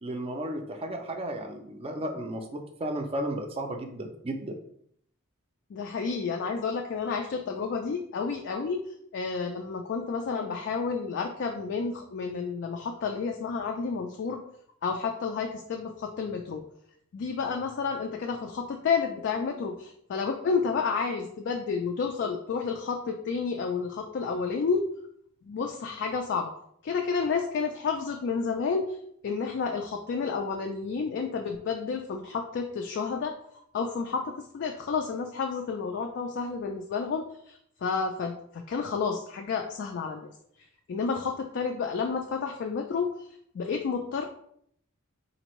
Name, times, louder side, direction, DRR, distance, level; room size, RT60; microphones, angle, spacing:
voice 1, 0.0-4.6, right 1 dB, 30° right, 4 dB, 0.4 m, -34 dB
voice 2, 5.7-8.8 9.1-14.4 14.8-16.6 17.1-24.9 25.5-26.5 26.8-29.0 29.2-33.4 33.7-40.3 40.9-43.1 43.5-44.3, left 5 dB, 55° left, 3 dB, 0.3 m, -30 dB
4.2 x 2.6 x 3.0 m, 0.69 s
head